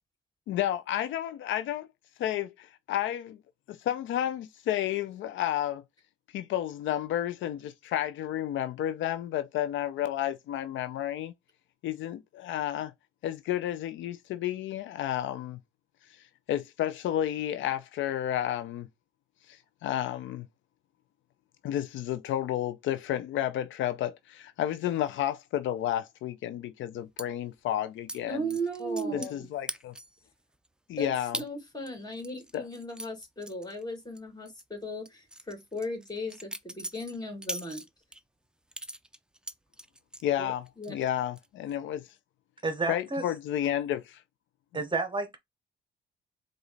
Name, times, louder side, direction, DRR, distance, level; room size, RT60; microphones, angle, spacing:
voice 1, 0.5-1.9 2.2-3.4 3.7-5.8 6.3-11.3 11.8-12.9 13.2-15.6 16.5-18.9 19.5-20.5 21.6-28.5 29.1-29.9 30.9-31.4 32.5-32.6 40.2-42.1 42.9-44.2, left 11 dB, 75° left, 0.5 m, -31 dB
sound 1, 27.2-27.3 28.1-28.2 28.5-29.4 29.7-30.2 30.6-30.7 31.3-31.5 31.9-34.2 34.5-34.6 35.1-38.2 38.7-40.3 40.7-41.1 41.4-41.7, right 1 dB, 5° right, 0.4 m, -40 dB
voice 2, 28.3-29.5 31.0-37.8 40.4-40.9, right 1 dB, 20° left, 2.4 m, -36 dB
voice 3, 42.6-43.2 44.7-45.4, right 3 dB, 25° right, 1.0 m, -30 dB
4.9 x 2.4 x 3.9 m
cardioid pair, 90°, 20 cm